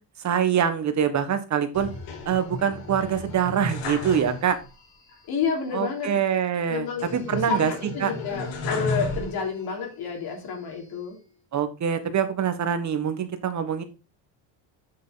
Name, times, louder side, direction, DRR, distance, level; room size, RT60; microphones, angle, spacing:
voice 1, 0.2-1.9 2.2-4.6 5.7-7.7 8.0-8.1 11.5-13.8, right 8 dB, 40° right, 9 dB, 1.6 m, -24 dB
sound 1, 1.7-4.8 5.1-5.2 7.0-9.7 10.3-11.1, left 3 dB, 75° left, 3.2 m, -33 dB
voice 2, 5.3-6.1 6.7-11.2, left 5 dB, 55° left, 2 dB, 3.4 m, -30 dB
8.2 x 6.8 x 4.0 m, 0.30 s
cardioid pair, 130°, 45 cm